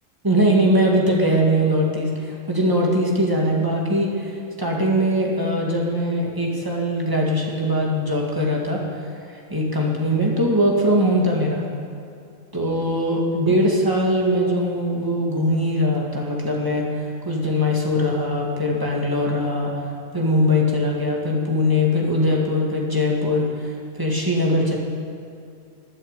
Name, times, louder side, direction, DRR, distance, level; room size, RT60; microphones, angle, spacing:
voice 1, 0.2-4.3 4.6-8.8 9.3-11.6 12.5-19.8 20.1-24.8, equal, 15° right, -2 dB, 2.1 m, -21 dB
12.5 x 9.9 x 8.4 m, 2.4 s
omnidirectional pair, 1.4 m